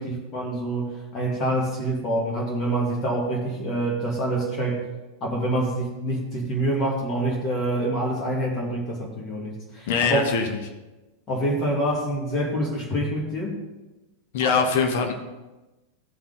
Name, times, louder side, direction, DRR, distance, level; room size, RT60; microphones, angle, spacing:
voice 1, 0.0-4.9 5.2-10.2 11.3-13.6 14.4-14.6, right 1 dB, 25° left, -3 dB, 2.1 m, -26 dB
voice 2, 9.9-10.5 14.3-15.1, left 5 dB, 50° left, 5 dB, 1.2 m, -22 dB
16.0 x 5.8 x 3.9 m, 1.1 s
figure-of-eight pair, 90°, 0 cm